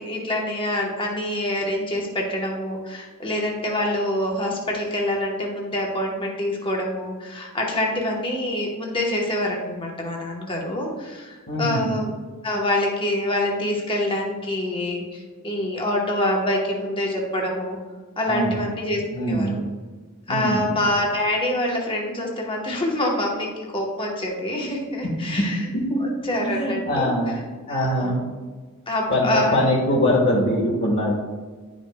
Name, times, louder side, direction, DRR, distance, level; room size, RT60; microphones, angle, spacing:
voice 1, 0.0-12.1 12.4-17.8 18.2-19.6 20.3-25.6 26.0-27.1 27.7-28.2 28.9-29.7, left 1 dB, 25° left, -1 dB, 1.1 m, -26 dB
voice 2, 11.5-11.9 18.3-18.6 19.1-19.6 20.3-20.8 25.2-25.4 25.7-26.0 26.4-27.4 27.7-28.2 29.1-31.1, equal, 50° left, -6 dB, 1.4 m, -22 dB
10.5 x 5.2 x 2.2 m, 1.3 s
head